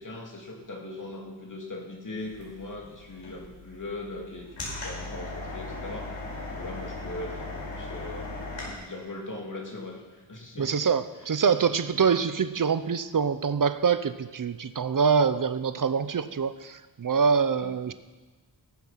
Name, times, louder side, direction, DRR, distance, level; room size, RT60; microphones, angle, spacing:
voice 1, 0.0-6.2 6.5-8.3 8.8-10.7 17.6-17.7, left 2 dB, 40° left, 0 dB, 2.7 m, -40 dB
sound 1, 2.2-8.7, left 2 dB, 75° left, 4.9 m, -38 dB
voice 2, 10.6-17.9, right 6 dB, 45° right, 13 dB, 0.7 m, -25 dB
19.0 x 7.7 x 5.8 m, 1.3 s
wide cardioid pair, 105°, 46 cm